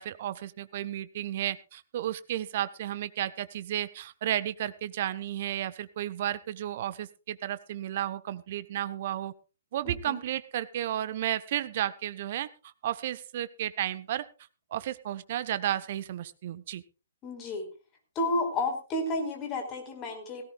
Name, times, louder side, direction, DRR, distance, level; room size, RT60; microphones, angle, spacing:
voice 1, 0.0-9.3 9.7-12.5 12.8-14.3 14.7-16.8, right 12 dB, 45° right, 14 dB, 1.0 m, -33 dB
voice 2, 9.8-10.2 17.2-17.6 18.1-20.4, left 2 dB, 25° left, 4 dB, 4.9 m, -31 dB
17.5 x 17.5 x 2.4 m, 0.33 s
figure-of-eight pair, 125°, 0 cm